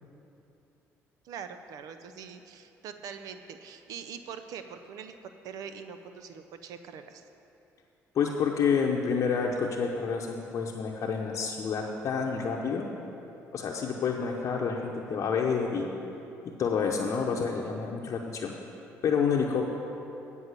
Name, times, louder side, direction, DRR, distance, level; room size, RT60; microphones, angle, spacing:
voice 1, 1.2-5.1 5.4-7.2, right 7 dB, 75° right, 8 dB, 0.5 m, -43 dB
voice 2, 8.1-12.9 13.5-15.9 16.6-18.5 19.0-19.7, left 6 dB, 55° left, 0 dB, 0.8 m, -28 dB
9.6 x 5.4 x 8.0 m, 2.9 s
supercardioid pair, 80°, 6 cm